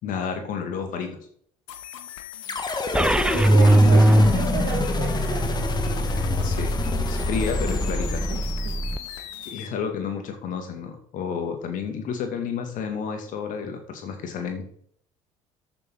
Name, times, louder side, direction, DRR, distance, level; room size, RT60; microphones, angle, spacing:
voice 1, 0.0-1.2 3.6-4.1 6.4-6.7 7.0-8.3 9.5-14.7, left 6 dB, 50° left, 5 dB, 2.4 m, -31 dB
sound 1, 1.7-9.7, left 10 dB, 65° left, 1.2 m, -40 dB
sound 2, 2.5-8.9, left 3 dB, 25° left, 1.7 m, -28 dB
sound 3, 2.9-9.0, right 1 dB, 5° right, 0.6 m, -21 dB
voice 2, 3.3-5.7 8.3-8.8, right 7 dB, 55° right, 0 dB, 1.9 m, -33 dB
13.5 x 7.1 x 3.9 m, 0.62 s
figure-of-eight pair, 60°, 17 cm